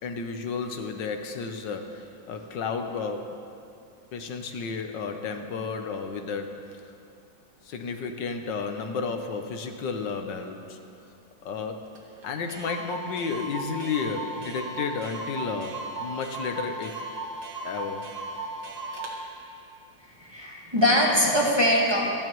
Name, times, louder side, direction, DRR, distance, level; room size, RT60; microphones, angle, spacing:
voice 1, 0.0-3.4 4.1-6.9 7.6-10.8 11.4-17.0 17.6-18.1, left 5 dB, 75° left, 5 dB, 1.5 m, -32 dB
Clock, 12.0-12.1 12.2-12.3 12.5-19.2, right 2 dB, 70° right, 2.3 m, -36 dB
voice 2, 20.2-22.1, left 1 dB, 15° right, -4 dB, 1.5 m, -22 dB
27.0 x 10.5 x 3.1 m, 2.5 s
omnidirectional pair, 2.0 m